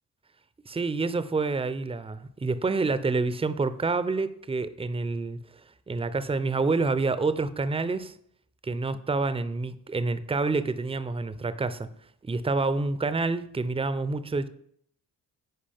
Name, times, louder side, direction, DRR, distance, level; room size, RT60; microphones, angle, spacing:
voice 1, 0.7-5.4 5.9-8.1 8.6-11.9 12.2-14.5, right 3 dB, 10° right, 0.6 m, -28 dB
10.0 x 4.9 x 3.5 m
hypercardioid pair, 45°, 46 cm